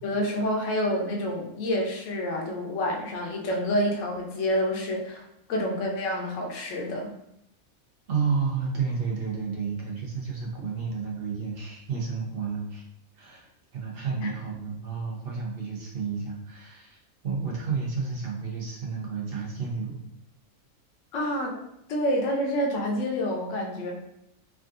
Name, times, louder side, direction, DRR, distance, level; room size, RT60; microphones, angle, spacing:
voice 1, 0.0-7.1 14.2-14.3 21.1-21.6 21.9-24.0, equal, 65° left, 0 dB, 1.0 m, -28 dB
voice 2, 8.1-12.8 13.2-17.0 17.2-20.0, right 5 dB, 55° right, -2 dB, 0.7 m, -31 dB
3.5 x 2.4 x 2.5 m, 0.78 s
omnidirectional pair, 1.5 m